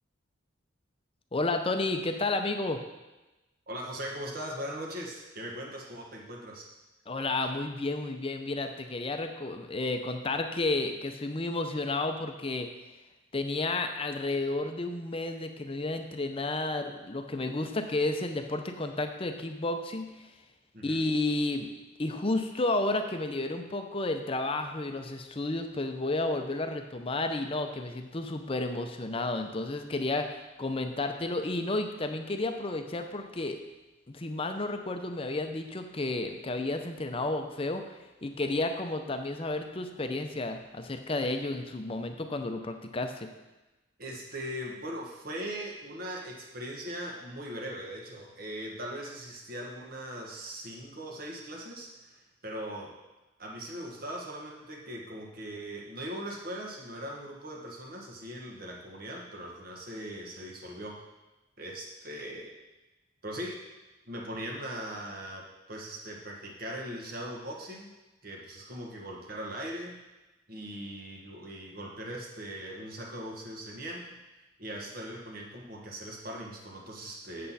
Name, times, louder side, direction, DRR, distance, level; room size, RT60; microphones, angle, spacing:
voice 1, 1.3-2.8 7.1-12.7 13.3-20.1 20.8-21.7 22.0-33.6 34.1-37.9 38.2-43.3, left 2 dB, 30° left, 6 dB, 0.7 m, -31 dB
voice 2, 3.7-6.7 20.7-21.0 44.0-52.9 53.4-61.0 61.6-62.5 63.2-63.6 64.0-67.9 68.2-70.0 70.5-74.2 74.6-77.5, equal, 50° right, 0 dB, 1.5 m, -40 dB
8.0 x 7.6 x 4.2 m, 1.1 s
head